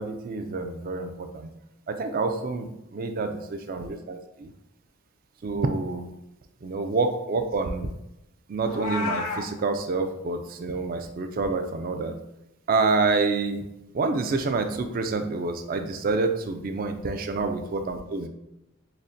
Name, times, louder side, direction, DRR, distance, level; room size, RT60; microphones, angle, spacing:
voice 1, 0.0-1.5 1.9-4.5 5.4-6.1 6.6-7.9 8.5-12.2 12.7-13.6 13.9-18.3, right 3 dB, 40° right, 7 dB, 0.3 m, -27 dB
Meow, 8.6-9.5, left 3 dB, 85° left, 0.8 m, -30 dB
6.3 x 2.1 x 2.6 m, 0.86 s
head